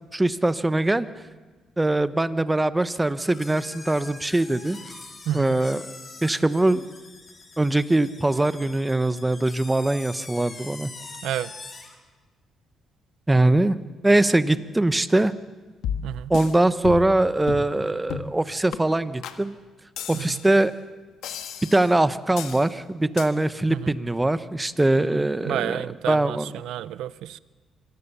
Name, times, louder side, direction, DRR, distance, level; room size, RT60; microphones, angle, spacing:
voice 1, 0.1-1.1 1.8-4.8 5.3-5.8 6.2-6.8 7.6-10.9 13.3-13.8 14.0-15.3 16.3-19.5 20.1-20.7 21.7-25.8 26.1-26.5, right 2 dB, 15° right, 12 dB, 1.0 m, -22 dB
sound 1, 3.2-12.0, left 3 dB, 35° left, 3.9 m, -43 dB
voice 2, 5.3-5.6 11.2-11.5 16.0-16.3 20.1-20.4 23.7-24.0 25.5-27.4, right 12 dB, 85° right, 17 dB, 0.6 m, -30 dB
sound 2, 15.8-16.5 16.8-17.2 17.5-17.7 18.1-18.4 18.7-18.8 19.2-19.4 20.0-20.6 21.2-21.9 22.4-22.7 23.2-23.3, left 8 dB, 85° left, 1.5 m, -33 dB
25.5 x 18.5 x 6.9 m, 1.3 s
cardioid pair, 90°, 0 cm